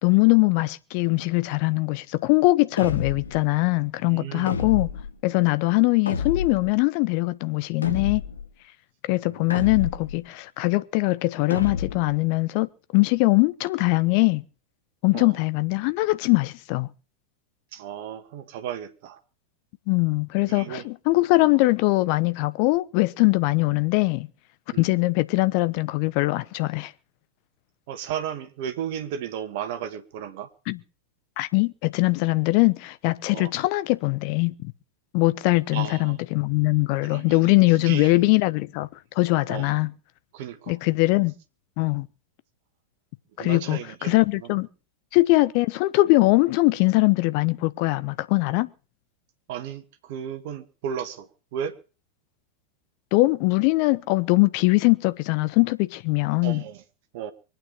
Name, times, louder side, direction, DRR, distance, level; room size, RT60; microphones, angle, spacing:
voice 1, 0.0-4.9 5.2-8.2 9.1-14.4 15.0-16.9 19.9-24.3 24.8-26.9 30.7-30.8 31.4-34.7 35.1-38.9 39.2-39.9 40.7-41.3 41.8-42.1 43.4-44.7 45.1-48.7 53.1-56.6, left 22 dB, 45° left, 0.9 m, -22 dB
Magic Hit Impact, 2.8-3.4 4.5-5.1 6.1-6.7 7.8-8.5 9.5-10.2 11.5-12.2, left 6 dB, 70° left, 1.6 m, -29 dB
voice 2, 4.0-4.7 9.3-9.7 15.1-15.4 17.7-19.2 20.5-20.8 21.4-21.5 24.7-24.9 27.9-30.5 33.3-33.5 35.7-36.2 37.0-38.3 39.5-39.8 40.3-40.8 43.4-44.1 44.4-44.5 49.5-51.8 56.4-56.8 57.1-57.3, right 9 dB, 50° right, 1.7 m, -34 dB
24.0 x 9.1 x 5.0 m
figure-of-eight pair, 90°, 0 cm